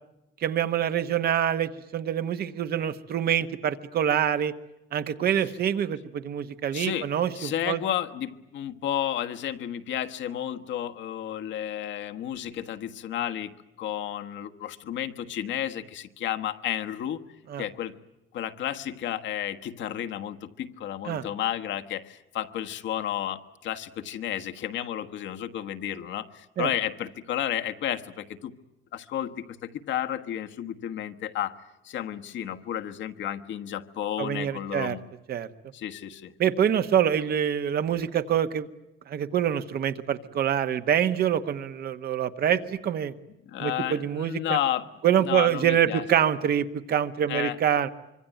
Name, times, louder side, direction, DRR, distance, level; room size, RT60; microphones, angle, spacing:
voice 1, 0.4-4.5 4.9-7.8 17.5-17.6 21.1-21.2 26.6-26.7 34.2-35.0 35.3-35.5 36.4-38.7 39.1-43.1 43.6-44.6 45.0-47.9, right 9 dB, 50° right, 10 dB, 1.2 m, -25 dB
voice 2, 6.7-7.1 7.3-13.5 13.8-17.2 17.6-17.9 18.3-28.5 28.9-31.6 31.8-35.0 35.7-36.3 43.5-44.9 45.2-46.0 47.3-47.6, left 11 dB, 70° left, 7 dB, 1.4 m, -32 dB
25.5 x 24.5 x 9.2 m, 0.93 s
cardioid pair, 165°, 20 cm